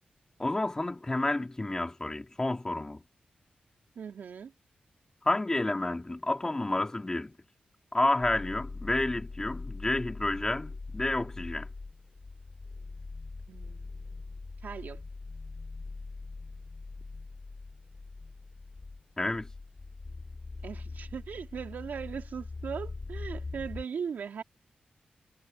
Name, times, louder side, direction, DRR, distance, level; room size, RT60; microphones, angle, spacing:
voice 1, 0.4-3.0 5.2-7.3 7.9-11.7 19.2-19.5, left 2 dB, 20° left, 2.6 m, -30 dB
voice 2, 3.9-4.5 13.5-15.0 20.6-24.4, right 7 dB, 90° right, 3.4 m, -39 dB
sound 1, 8.2-23.8, left 3 dB, 40° left, 5.6 m, -42 dB
wide cardioid pair, 90°, 3 cm